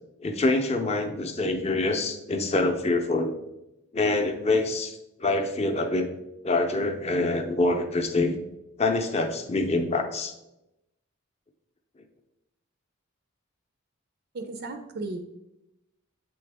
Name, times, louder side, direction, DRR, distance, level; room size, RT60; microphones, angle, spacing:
voice 1, 0.2-3.3 3.9-6.1 6.4-8.4 8.8-10.3, left 2 dB, 30° left, 5 dB, 0.6 m, -25 dB
voice 2, 14.3-15.2, right 2 dB, 50° right, 6 dB, 0.4 m, -35 dB
7.8 x 3.8 x 3.4 m, 0.90 s
head